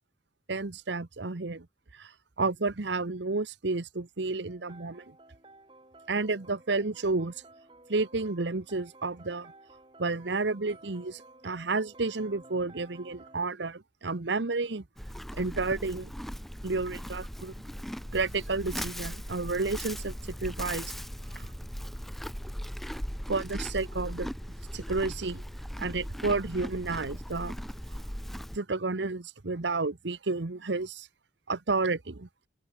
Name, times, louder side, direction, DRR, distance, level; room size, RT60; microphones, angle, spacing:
voice 1, 0.5-1.7 1.9-2.1 2.4-5.0 6.1-7.3 7.9-9.5 10.0-14.8 15.4-16.1 16.6-17.5 18.1-20.1 20.4-20.9 21.3-21.5 23.3-24.3 24.7-25.4 25.8-27.6 28.5-31.1 31.5-32.3, right 3 dB, 80° right, 1.1 m, -31 dB
sound 1, 4.5-13.5, right 2 dB, 30° right, 3.2 m, -54 dB
Livestock farm animals working animals, 15.0-28.6, equal, ahead, 0.5 m, -38 dB
head